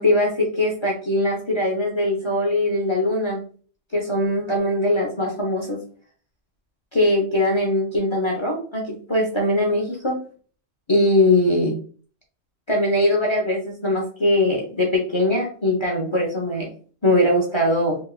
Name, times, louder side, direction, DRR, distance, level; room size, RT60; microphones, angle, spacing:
voice 1, 0.0-3.4 3.9-5.8 6.9-10.2 10.9-11.8 12.7-16.7 17.0-18.0, left 1 dB, 30° left, -1 dB, 0.6 m, -21 dB
3.5 x 3.1 x 2.3 m, 0.42 s
omnidirectional pair, 1.3 m